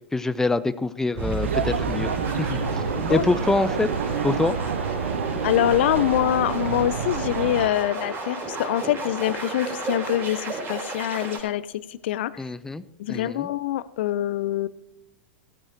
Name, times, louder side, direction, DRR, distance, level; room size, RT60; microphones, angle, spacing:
voice 1, 0.0-2.1 2.4-2.6 3.1-3.9 4.2-4.6 12.4-12.8 13.1-13.5, left 3 dB, 5° left, 14 dB, 0.5 m, -25 dB
sound 1, 1.2-11.4, right 3 dB, 35° right, 4.4 m, -32 dB
sound 2, 1.4-7.7, right 6 dB, 80° right, 0.7 m, -28 dB
voice 2, 5.4-12.3 13.0-14.7, left 13 dB, 65° left, 17 dB, 0.5 m, -25 dB
14.5 x 8.9 x 4.5 m, 0.90 s
hypercardioid pair, 95°, 6 cm